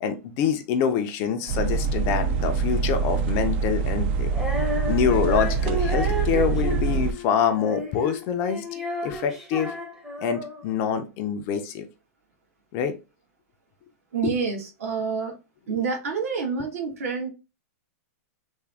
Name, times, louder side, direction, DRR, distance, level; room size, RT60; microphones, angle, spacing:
voice 1, 0.0-4.3 4.9-9.8 10.2-11.9 12.7-12.9, left 7 dB, 30° left, 7 dB, 0.4 m, -26 dB
sound 1, 1.5-7.1, right 5 dB, 45° right, 0.3 m, -25 dB
Female singing, 4.3-10.7, equal, 5° right, 0.7 m, -32 dB
voice 2, 14.1-15.3 15.7-17.3, right 5 dB, 70° right, 2 dB, 1.3 m, -28 dB
3.4 x 2.1 x 3.3 m, 0.29 s
supercardioid pair, 160°, 8 cm